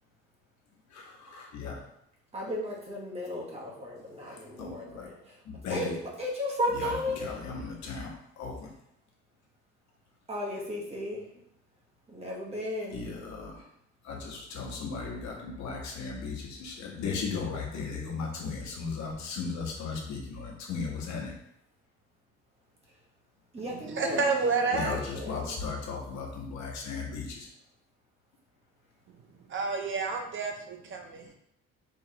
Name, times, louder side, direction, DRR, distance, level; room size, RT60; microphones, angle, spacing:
voice 1, 0.9-1.8 4.2-5.1 5.4-5.9 6.7-8.7 12.9-13.7 14.0-21.3 24.7-27.5, left 4 dB, 70° left, -1 dB, 1.1 m, -36 dB
voice 2, 2.3-5.4 5.7-7.3 10.3-11.3 12.1-13.1 23.5-25.6, left 1 dB, 20° right, -4 dB, 1.1 m, -35 dB
voice 3, 24.0-25.0 29.5-31.3, right 4 dB, 45° right, 4 dB, 0.5 m, -29 dB
4.7 x 3.0 x 2.8 m, 0.75 s
cardioid pair, 145°, 29 cm